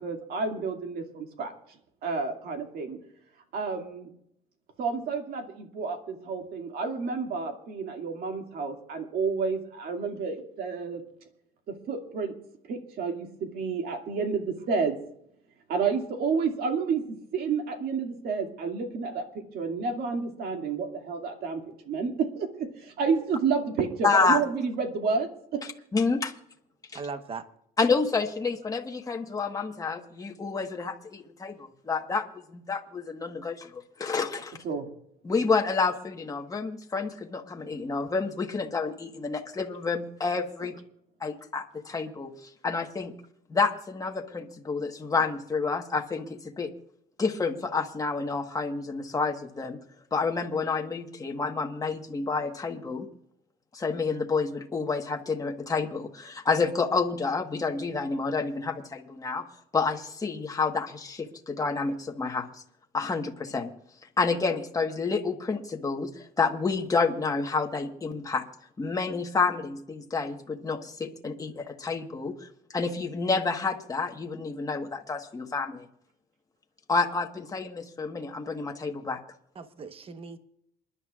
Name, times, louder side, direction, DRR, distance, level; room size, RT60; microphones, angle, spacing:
voice 1, 0.0-3.0 3.5-4.1 4.8-11.0 11.7-12.3 12.6-15.0 15.7-25.7 34.6-34.9 40.6-40.7, right 5 dB, 65° right, 4 dB, 2.3 m, -30 dB
voice 2, 24.0-24.4 25.9-26.3 27.8-32.2 32.5-34.6 35.2-40.7 41.2-42.3 42.6-43.1 43.5-46.7 47.2-49.8 50.1-53.1 53.7-59.4 59.7-62.5 62.9-63.7 64.2-68.4 68.8-72.3 72.7-75.9 76.9-79.2, left 4 dB, 20° left, 3 dB, 1.4 m, -29 dB
voice 3, 26.9-27.4 79.5-80.4, right 4 dB, 35° right, 9 dB, 1.1 m, -38 dB
28.0 x 11.0 x 2.4 m, 0.73 s
cardioid pair, 110°, 17 cm